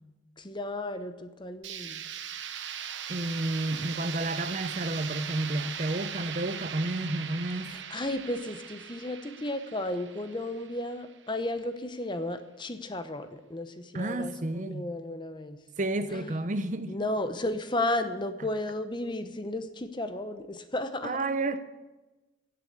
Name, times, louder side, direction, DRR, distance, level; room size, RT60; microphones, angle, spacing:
voice 1, 0.4-2.0 7.7-15.6 16.1-16.2 16.9-21.3, left 1 dB, 25° left, 0.8 m, -34 dB
sound 1, 1.6-11.4, right 8 dB, 65° right, 1.0 m, -39 dB
voice 2, 3.1-7.7 13.9-14.9 15.8-17.0 21.0-21.6, right 2 dB, 40° right, 0.7 m, -31 dB
16.0 x 7.7 x 8.7 m
head